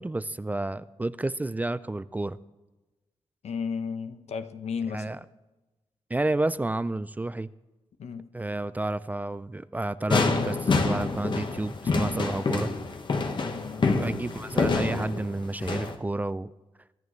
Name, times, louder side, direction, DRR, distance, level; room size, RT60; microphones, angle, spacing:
voice 1, 0.0-2.4 4.9-5.2 6.1-7.5 8.3-12.7 13.8-16.5, right 2 dB, 15° right, 16 dB, 0.4 m, -30 dB
voice 2, 3.4-5.2 8.0-8.3 13.5-14.1, left 6 dB, 80° left, 9 dB, 1.0 m, -34 dB
sound 1, 10.1-16.0, left 4 dB, 45° left, 1.3 m, -27 dB
23.5 x 10.5 x 3.2 m, 1.1 s
wide cardioid pair, 115°, 11 cm